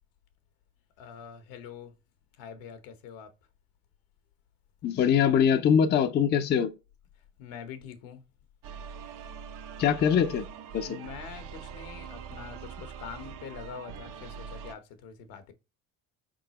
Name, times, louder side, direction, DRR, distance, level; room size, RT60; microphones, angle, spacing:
voice 1, 1.0-1.9 2.4-3.3 7.4-8.2 10.8-15.5, left 7 dB, 80° left, 1.1 m, -44 dB
voice 2, 4.8-6.7 9.8-10.5 10.7-11.0, left 8 dB, 30° left, 0.5 m, -23 dB
sound 1, 8.6-14.7, right 7 dB, 65° right, 0.8 m, -43 dB
4.8 x 3.7 x 2.9 m
cardioid pair, 130°, 34 cm